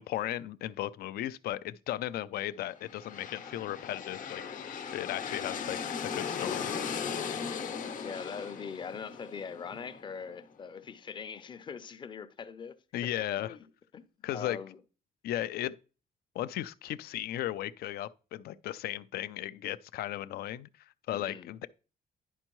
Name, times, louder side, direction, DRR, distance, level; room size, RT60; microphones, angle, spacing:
voice 1, 0.0-4.4 4.9-6.7 12.9-13.6 14.2-14.6 15.2-15.7 16.3-20.7 21.1-21.7, left 13 dB, 85° left, 0.4 m, -36 dB
sound 1, 2.8-10.4, left 6 dB, 60° left, 0.8 m, -38 dB
voice 2, 8.0-13.1 13.4-13.6 13.9-14.0 14.3-14.8 21.1-21.5, left 6 dB, 30° left, 0.5 m, -42 dB
11.0 x 4.4 x 3.0 m
cardioid pair, 165°, 16 cm